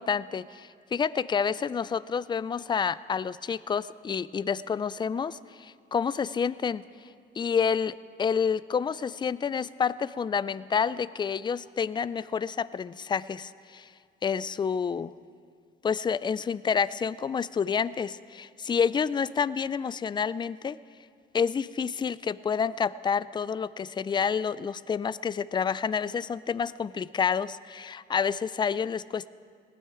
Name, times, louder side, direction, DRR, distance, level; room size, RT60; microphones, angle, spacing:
voice 1, 0.0-6.9 7.4-13.9 14.2-15.1 15.8-20.8 21.3-29.3, left 6 dB, 25° left, 18 dB, 0.3 m, -29 dB
18.5 x 12.0 x 4.9 m, 2.2 s
cardioid pair, 90°, 20 cm